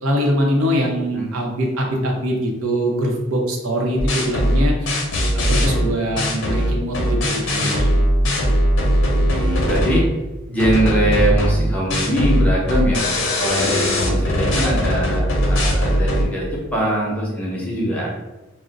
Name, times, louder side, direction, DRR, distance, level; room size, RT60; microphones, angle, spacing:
voice 1, 0.0-4.9 5.3-7.9, equal, 80° right, 0 dB, 0.7 m, -22 dB
sound 1, 4.0-10.1 10.6-16.3, equal, 60° left, 0.6 m, -19 dB
voice 2, 9.1-10.1 10.5-13.1 13.4-18.1, right 1 dB, 5° left, -4 dB, 0.6 m, -22 dB
2.4 x 2.0 x 3.9 m, 1.1 s
head